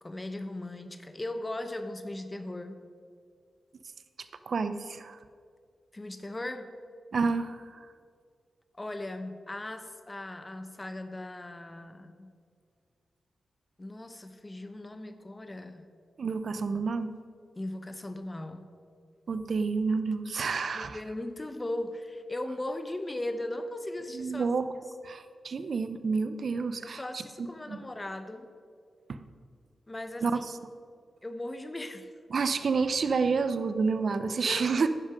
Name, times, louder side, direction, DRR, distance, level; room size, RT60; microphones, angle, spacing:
voice 1, 0.0-2.8 5.9-6.7 8.7-12.3 13.8-15.9 17.6-18.7 20.7-24.5 26.8-28.5 29.9-30.4 31.2-32.1 34.5-34.7, left 1 dB, 25° left, 9 dB, 1.0 m, -38 dB
voice 2, 4.5-5.2 7.1-7.9 16.2-17.1 19.3-21.0 24.1-24.7 25.0-27.2 27.7-27.8 29.1-29.2 30.2-30.4 32.3-34.9, right 4 dB, 65° right, 11 dB, 0.7 m, -29 dB
11.0 x 10.5 x 5.1 m, 2.2 s
supercardioid pair, 45°, 0 cm